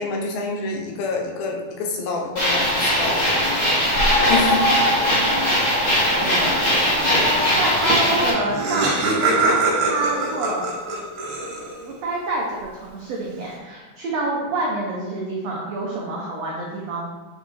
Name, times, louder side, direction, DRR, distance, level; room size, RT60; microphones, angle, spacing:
voice 1, 0.0-3.8 4.3-4.7, left 3 dB, 80° left, 1 dB, 2.6 m, -27 dB
sound 1, 2.4-8.3, equal, 35° left, 1.5 m, -19 dB
voice 2, 5.9-10.7 11.8-17.0, right 2 dB, 90° right, -3 dB, 1.4 m, -28 dB
Laughter, 8.0-8.1 8.2-11.9, right 3 dB, 65° right, 3.0 m, -23 dB
6.8 x 5.3 x 3.5 m, 1.3 s
omnidirectional pair, 4.3 m